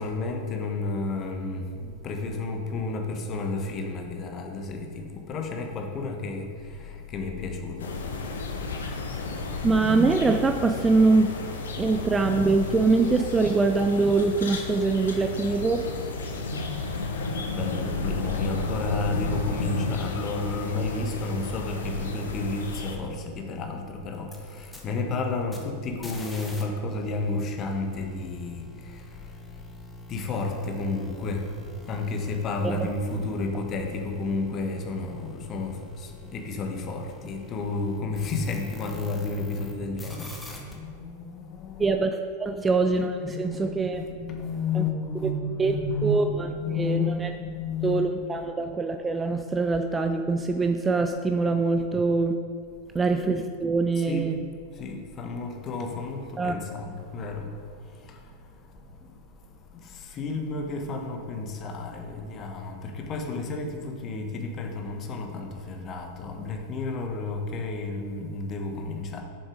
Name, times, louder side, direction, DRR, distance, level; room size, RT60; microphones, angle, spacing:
voice 1, 0.0-7.9 16.2-29.0 30.1-31.5 31.9-42.0 42.4-42.6 43.3-48.5 54.0-54.3 54.8-57.5 58.1-58.2 59.8-69.2, left 3 dB, 30° left, 3 dB, 1.2 m, -32 dB
sound 1, 7.8-23.0, left 3 dB, 65° left, 1.0 m, -32 dB
voice 2, 9.6-11.3 11.8-15.8 32.6-32.9 41.8-44.0 44.7-44.9 45.2-45.3 45.6-46.5 46.8-47.3 47.8-52.3 52.9-54.5 56.4-56.6, right 3 dB, 15° right, 6 dB, 0.4 m, -24 dB
sound 2, 24.1-26.6 26.9-39.7 40.0-40.7, left 1 dB, 10° left, 1.3 m, -45 dB
7.2 x 7.0 x 5.0 m, 2.2 s
figure-of-eight pair, 90°, 0 cm